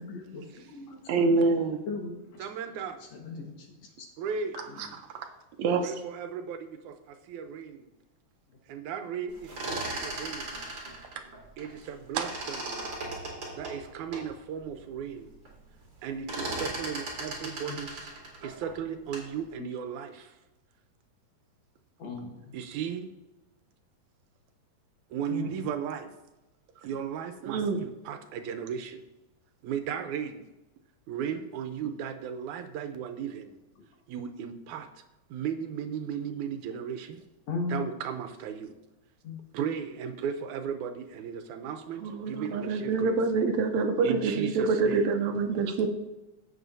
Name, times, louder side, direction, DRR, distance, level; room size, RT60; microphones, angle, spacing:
voice 1, 0.0-1.6 1.9-2.5 3.0-3.5 4.7-5.0 17.6-17.8 19.6-19.7 22.0-22.5 25.3-25.7 37.5-37.9 39.2-39.4, left 3 dB, 65° left, 0 dB, 2.6 m, -37 dB
voice 2, 1.1-1.8 4.8-4.9 5.1-5.3 5.6-5.9 12.2-12.3 27.4-27.9 42.0-45.9, right 4 dB, 75° right, 6 dB, 2.0 m, -26 dB
voice 3, 2.4-3.0 4.2-4.6 5.8-7.9 8.7-10.5 11.6-12.9 13.5-15.3 16.0-18.1 18.4-20.4 22.5-23.1 25.1-26.1 26.8-29.0 29.6-30.5 31.1-33.6 34.1-34.9 35.3-37.2 37.7-38.8 39.5-43.2 44.0-45.0, right 8 dB, 90° right, 7 dB, 2.1 m, -36 dB
sound 1, 9.3-11.9 12.1-14.3 14.8-14.9 15.1-15.6 15.8-19.4, right 2 dB, 40° right, 2.9 m, -37 dB
15.5 x 7.0 x 2.7 m, 1.0 s
omnidirectional pair, 3.4 m